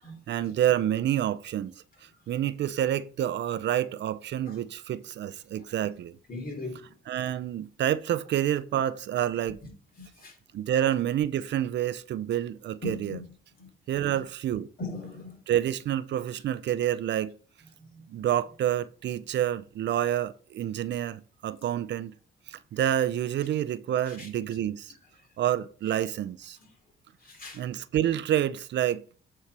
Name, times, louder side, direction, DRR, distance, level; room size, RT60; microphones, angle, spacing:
voice 1, 0.3-1.7 2.3-6.1 7.1-9.6 10.5-13.2 13.9-14.7 15.5-17.3 18.1-22.1 22.5-24.9 25.4-26.6 27.5-29.0, right 11 dB, 65° right, 0.5 m, -28 dB
voice 2, 6.3-6.8 10.2-10.3 12.8-13.2 13.6-13.7 14.1-14.2 14.8-15.4 17.9-18.0 24.0-24.3 27.2-27.6, left 2 dB, 45° left, 3.4 m, -38 dB
8.3 x 4.3 x 6.0 m
cardioid pair, 90°, 20 cm